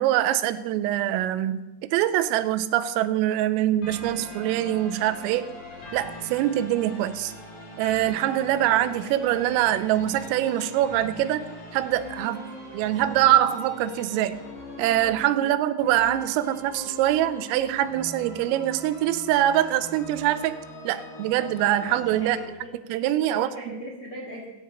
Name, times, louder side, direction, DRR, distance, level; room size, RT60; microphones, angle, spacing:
voice 1, 0.0-1.7 1.9-5.5 5.9-7.3 7.8-12.5 12.7-14.4 14.8-20.6 20.9-22.4 22.9-23.5, right 13 dB, 85° right, 13 dB, 3.3 m, -24 dB
sound 1, 3.8-22.4, left 1 dB, 50° left, 4.1 m, -41 dB
voice 2, 22.2-22.7 23.3-24.4, equal, 80° left, -3 dB, 1.2 m, -38 dB
20.0 x 9.6 x 4.3 m, 1.1 s
omnidirectional pair, 5.8 m